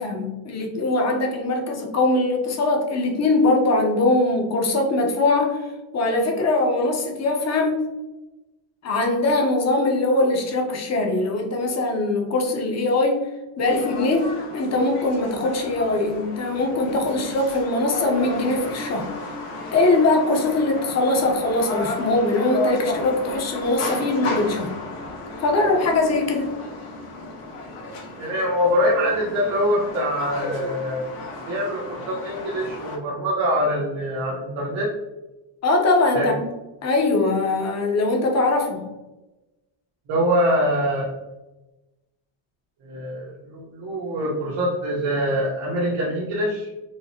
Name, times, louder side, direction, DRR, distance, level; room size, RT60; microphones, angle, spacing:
voice 1, 0.0-5.7 5.9-7.9 8.8-13.3 13.6-19.1 19.7-24.7 25.4-26.6 35.6-36.5 36.8-38.8, left 2 dB, 35° left, 2 dB, 0.6 m, -21 dB
sound 1, 13.6-33.0, left 2 dB, 90° left, 1.2 m, -34 dB
voice 2, 28.2-31.0 31.5-34.9 36.1-36.3 40.1-41.1 42.8-46.7, equal, 70° right, -5 dB, 1.1 m, -24 dB
4.9 x 2.0 x 2.7 m, 1.0 s
cardioid pair, 155°, 49 cm